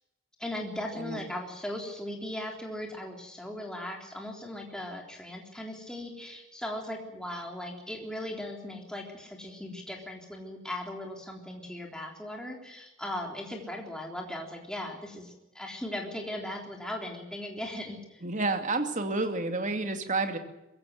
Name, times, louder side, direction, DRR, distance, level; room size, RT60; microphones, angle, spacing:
voice 1, 0.4-18.2, left 1 dB, 5° left, 1 dB, 3.7 m, -38 dB
voice 2, 18.2-20.4, right 3 dB, 40° right, 6 dB, 2.5 m, -30 dB
22.0 x 16.5 x 9.2 m, 0.96 s
head